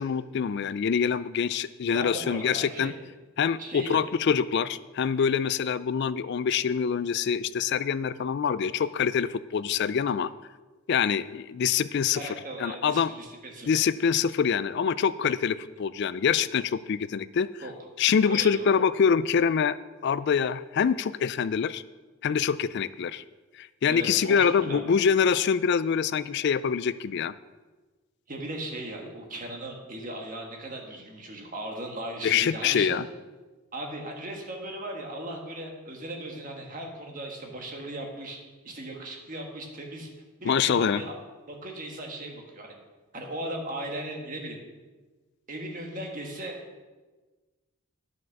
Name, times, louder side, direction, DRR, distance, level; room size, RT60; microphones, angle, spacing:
voice 1, 0.0-2.9 3.4-10.3 10.9-12.3 12.6-13.1 13.7-17.5 18.0-19.8 20.0-21.8 22.2-23.2 23.6-27.3 32.2-33.1 40.5-41.0, left 7 dB, 50° left, 16 dB, 0.3 m, -25 dB
voice 2, 1.9-2.9 3.6-4.0 12.1-13.7 17.6-17.7 18.2-18.8 23.9-24.8 28.3-33.0 33.7-38.4 38.6-40.1 40.4-41.1 41.5-42.7 43.1-44.6 45.5-46.5, right 1 dB, 35° right, 1 dB, 1.5 m, -37 dB
9.2 x 6.0 x 6.5 m, 1.3 s
head